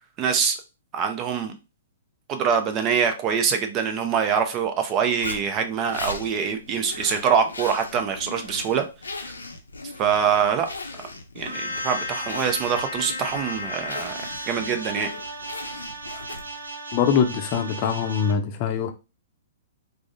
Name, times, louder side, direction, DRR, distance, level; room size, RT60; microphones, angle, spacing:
voice 1, 0.2-0.6 0.9-1.5 2.3-8.8 10.0-10.7 11.4-14.2 14.5-15.1, right 7 dB, 30° right, 0.5 m, -24 dB
Zipper (clothing), 5.2-16.7, left 3 dB, 90° left, 0.6 m, -38 dB
sound 1, 11.4-18.3, equal, 85° right, 0.7 m, -34 dB
voice 2, 16.9-18.9, left 7 dB, 40° left, 0.5 m, -23 dB
3.5 x 2.0 x 2.6 m
hypercardioid pair, 120°, 0 cm